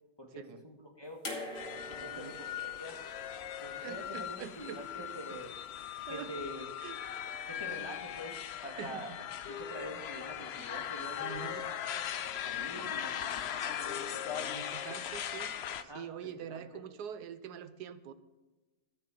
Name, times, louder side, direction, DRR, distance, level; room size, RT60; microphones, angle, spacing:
voice 1, 0.2-1.2 1.7-3.0 3.6-5.5 6.1-6.7 7.5-9.1 9.5-11.5 11.9-12.1 12.4-14.6 15.8-16.0 16.5-16.8, equal, 15° left, 0 dB, 1.7 m, -46 dB
sound 1, 1.2-4.4 5.6-5.7, left 1 dB, 50° left, 2.8 m, -45 dB
sound 2, 1.5-15.8, left 10 dB, 70° left, 0.6 m, -39 dB
voice 2, 2.0-2.3 3.8-5.1 6.1-6.4 6.8-7.0 8.8-9.0 9.5-9.6 11.2-11.6 14.5-15.5 15.8-18.1, right 9 dB, 80° right, 13 dB, 1.3 m, -45 dB
14.0 x 6.7 x 7.7 m, 1.2 s
omnidirectional pair, 1.7 m